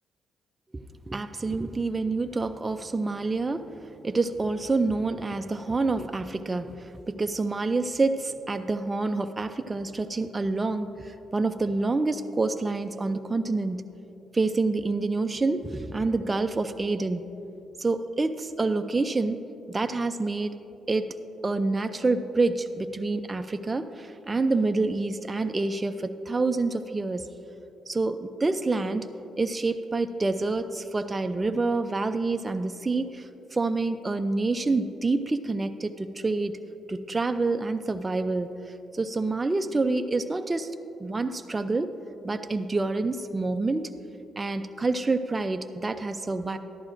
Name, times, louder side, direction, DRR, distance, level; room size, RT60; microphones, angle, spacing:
voice 1, 0.7-3.7 4.0-13.8 14.3-17.2 17.8-19.4 19.7-20.5 20.9-21.1 21.4-27.3 27.9-29.1 29.4-36.5 36.9-38.5 38.9-40.7 41.0-41.9 42.2-43.9 44.4-46.6, right 3 dB, 20° right, 7 dB, 0.4 m, -27 dB
13.0 x 11.5 x 2.5 m, 2.8 s
cardioid pair, 90°, 0 cm